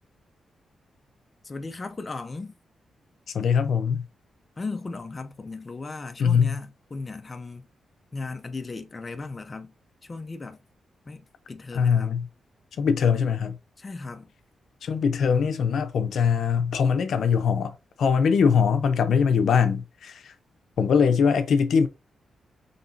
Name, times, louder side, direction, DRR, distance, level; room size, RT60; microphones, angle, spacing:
voice 1, 1.4-2.5 4.6-7.7 8.1-9.7 10.0-10.6 11.1-12.2 13.8-14.3, left 3 dB, 30° left, 0.5 m, -36 dB
voice 2, 3.3-4.1 6.2-6.6 11.7-12.3 12.8-13.6 14.8-20.3 20.8-21.9, left 6 dB, 70° left, 0.6 m, -22 dB
5.3 x 2.8 x 2.6 m
wide cardioid pair, 120°, 0 cm